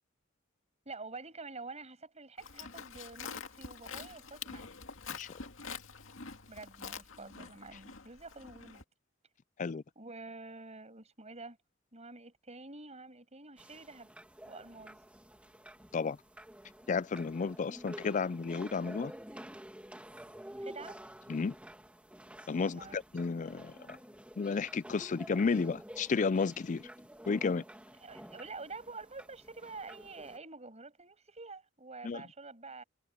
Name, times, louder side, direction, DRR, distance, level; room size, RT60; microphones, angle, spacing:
voice 1, 0.8-4.7 6.5-8.8 10.0-11.6 11.9-14.1 14.5-15.0 20.6-21.0 22.6-23.0 28.0-32.8, right 3 dB, 35° right, 7.9 m, -48 dB
Livestock farm animals working animals, 2.4-8.8, left 6 dB, 90° left, 2.1 m, -46 dB
sound 1, 13.6-30.4, right 1 dB, 5° right, 2.3 m, -50 dB
voice 2, 16.9-19.1 21.3-21.5 22.5-24.0 24.4-26.8 27.3-27.6 32.0-32.2, left 5 dB, 40° left, 0.4 m, -32 dB
head